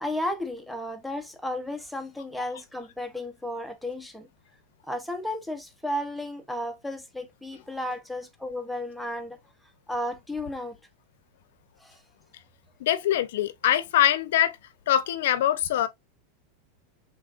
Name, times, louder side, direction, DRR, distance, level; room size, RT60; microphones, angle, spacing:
voice 1, 0.0-4.3 4.9-9.4 9.9-10.8 11.8-12.0, left 1 dB, ahead, 0.6 m, -33 dB
voice 2, 12.8-14.5 14.9-15.9, left 11 dB, 65° left, 0.6 m, -23 dB
5.0 x 3.4 x 2.4 m
supercardioid pair, 175°, 0 cm